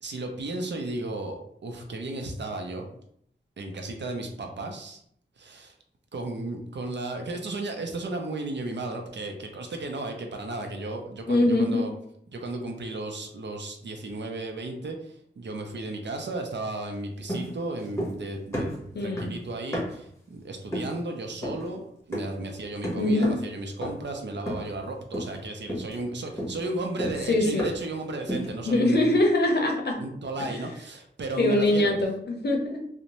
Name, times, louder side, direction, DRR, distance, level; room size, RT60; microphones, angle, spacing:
voice 1, 0.0-2.9 3.6-5.0 5.4-5.7 6.1-11.9 12.3-29.2 30.0-31.9, right 2 dB, 65° right, 3 dB, 0.5 m, -34 dB
voice 2, 11.3-11.8 18.9-19.3 23.0-23.3 27.3-27.7 28.7-30.0 30.4-30.5 31.4-32.8, left 1 dB, 60° left, 1 dB, 0.6 m, -23 dB
sound 1, 17.3-18.3 18.5-20.1 20.7-21.0 21.4-21.7 22.1-22.4 22.8-23.5 23.8-24.1 24.5-24.8 25.1-25.4 25.7-27.9 28.3-28.6, equal, 15° left, 1.0 m, -33 dB
2.6 x 2.1 x 2.9 m, 0.67 s
wide cardioid pair, 95°, 20 cm